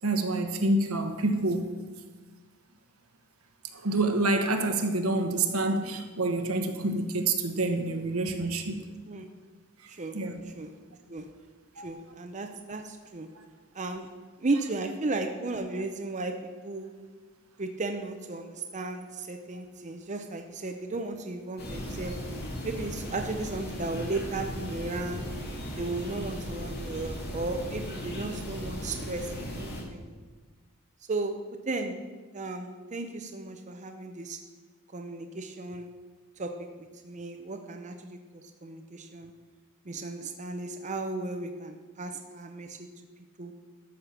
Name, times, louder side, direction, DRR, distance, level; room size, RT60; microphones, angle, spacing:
voice 1, 0.0-1.7 3.7-8.9 9.8-10.4 11.8-11.9, right 2 dB, 80° right, 6 dB, 1.2 m, -27 dB
voice 2, 11.8-13.3 13.7-14.1 14.4-16.4 16.6-16.9 17.6-22.1 22.6-25.2 25.8-30.2 31.1-31.4 31.7-32.0 32.3-34.4 34.9-35.9 36.4-39.3 39.9-42.9 43.4-43.5, right 2 dB, 35° right, 4 dB, 0.7 m, -35 dB
sound 1, 21.6-29.8, equal, 50° left, 2.3 m, -37 dB
13.0 x 6.6 x 5.9 m, 1.4 s
head